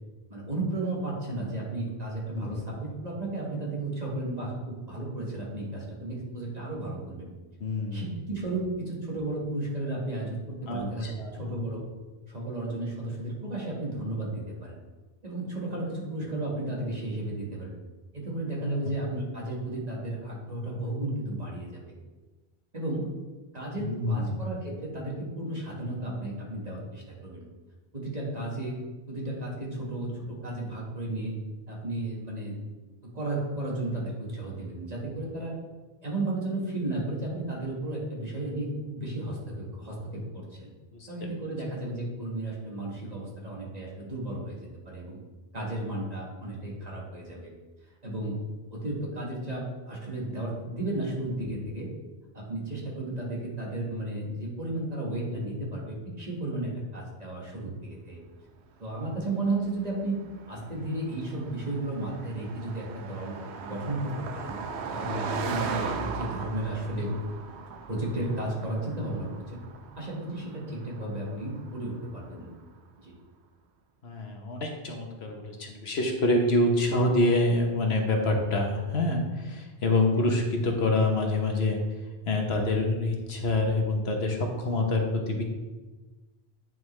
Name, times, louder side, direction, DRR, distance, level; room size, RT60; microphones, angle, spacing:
voice 1, 0.3-7.3 7.9-11.8 12.3-14.7 15.2-17.7 18.1-21.8 22.7-23.1 23.5-27.4 27.9-28.8 29.1-31.3 31.7-32.7 33.1-35.5 36.0-40.7 41.1-44.6 44.8-45.2 45.5-47.5 48.0-48.4 48.7-51.9 52.3-58.2 58.8-60.2 60.5-64.6 64.9-67.1 67.9-69.6 69.9-72.5 73.0-73.1, right 2 dB, 40° right, -4 dB, 1.7 m, -33 dB
voice 2, 2.3-2.6 7.6-8.0 10.7-11.6 23.8-24.5 40.9-41.3 74.0-81.8 82.3-85.4, left 2 dB, 70° left, 2 dB, 1.2 m, -26 dB
Car passing by, 58.9-72.6, right 5 dB, 85° right, 1.0 m, -39 dB
9.2 x 5.4 x 3.2 m, 1.2 s
omnidirectional pair, 1.1 m